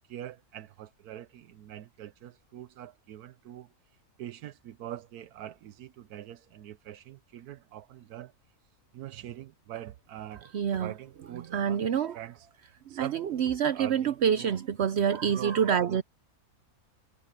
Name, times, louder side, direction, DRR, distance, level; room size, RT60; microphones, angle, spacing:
voice 1, 0.0-8.5 8.9-11.8 12.1-14.5 15.3-16.0, right 12 dB, 85° right, 1.2 m, -44 dB
voice 2, 10.5-10.9 11.3-12.2 12.9-16.0, right 8 dB, 60° right, 0.7 m, -27 dB
omnidirectional pair, 1.6 m